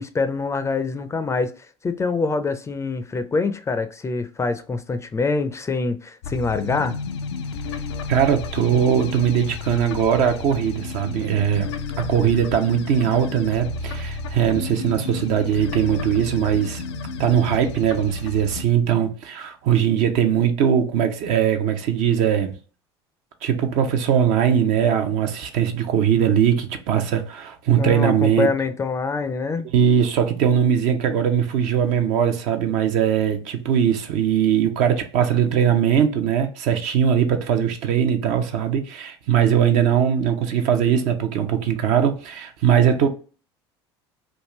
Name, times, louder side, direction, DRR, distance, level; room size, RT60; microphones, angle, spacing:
voice 1, 0.0-1.5 1.8-7.0 27.8-29.7, left 4 dB, 20° left, 0.4 m, -25 dB
sound 1, 6.2-18.6, left 4 dB, 80° left, 0.4 m, -32 dB
voice 2, 8.1-11.7 12.0-16.8 17.2-22.5 23.4-28.5 29.6-43.1, right 9 dB, 60° right, 0.6 m, -20 dB
3.5 x 2.5 x 2.9 m
hypercardioid pair, 70°, 14 cm